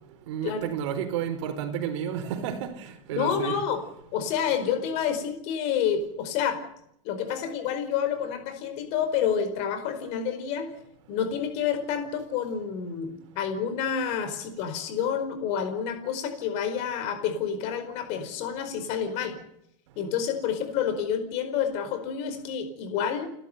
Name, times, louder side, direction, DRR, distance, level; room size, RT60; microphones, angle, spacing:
voice 1, 0.3-3.6, right 8 dB, 60° right, 4.3 m, -31 dB
voice 2, 3.1-3.8 4.1-6.6 7.0-10.7 11.1-19.4 20.0-23.3, left 8 dB, 40° left, 4.8 m, -29 dB
29.5 x 13.0 x 9.3 m
supercardioid pair, 170°, 18 cm